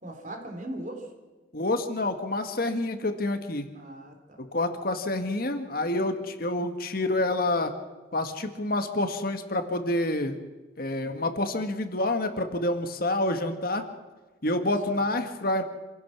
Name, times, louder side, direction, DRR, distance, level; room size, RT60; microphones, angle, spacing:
voice 1, 0.0-1.1 3.7-4.4 14.5-15.0, right 1 dB, 40° right, 3 dB, 4.0 m, -40 dB
voice 2, 1.5-3.7 4.4-7.7 8.1-10.4 10.8-13.8 14.4-15.6, left 2 dB, 50° left, 7 dB, 1.7 m, -28 dB
27.0 x 16.0 x 6.1 m, 1.2 s
head